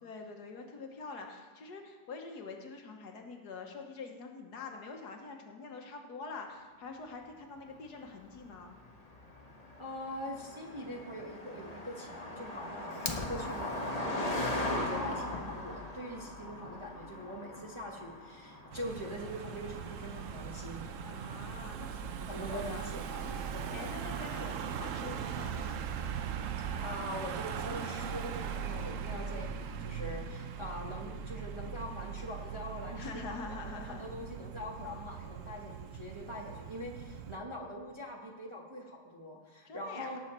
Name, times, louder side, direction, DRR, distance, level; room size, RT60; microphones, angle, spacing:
voice 1, 0.0-8.8 21.0-23.0 23.4-25.9 33.0-34.0 39.7-40.2, left 4 dB, 70° left, 3 dB, 1.7 m, -45 dB
Car passing by, 7.8-21.6, left 1 dB, 25° left, 1.2 m, -40 dB
voice 2, 9.8-20.9 22.2-23.8 26.6-40.2, equal, 20° right, -1 dB, 1.0 m, -43 dB
Fire, 12.9-13.9, left 3 dB, 50° left, 0.3 m, -39 dB
Car passing by / Engine, 18.7-37.4, right 7 dB, 65° right, 0.8 m, -40 dB
17.5 x 7.2 x 4.3 m, 1.4 s
omnidirectional pair, 1.9 m